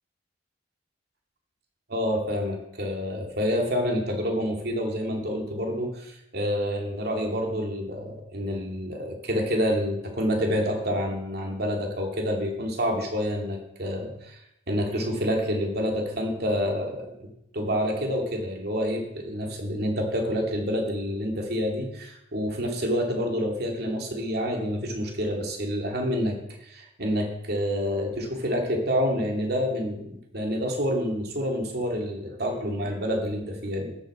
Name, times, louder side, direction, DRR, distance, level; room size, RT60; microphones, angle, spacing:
voice 1, 1.9-14.4 14.7-34.0, equal, 55° right, 2 dB, 2.8 m, -28 dB
13.5 x 10.5 x 5.0 m, 0.79 s
head